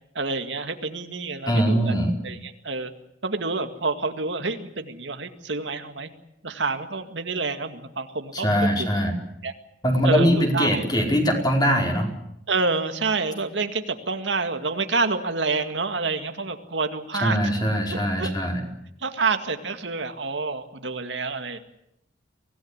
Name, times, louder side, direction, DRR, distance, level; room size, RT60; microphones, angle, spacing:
voice 1, 0.2-1.9 2.2-2.9 3.2-6.1 6.4-8.9 9.4-9.5 10.0-10.8 12.5-17.4 17.9-18.3 19.0-21.6, right 3 dB, 80° right, 7 dB, 2.1 m, -28 dB
voice 2, 1.5-2.1 8.3-9.1 9.8-12.1 17.2-18.6, equal, 25° left, 1 dB, 4.9 m, -22 dB
24.5 x 17.5 x 9.8 m, 0.78 s
head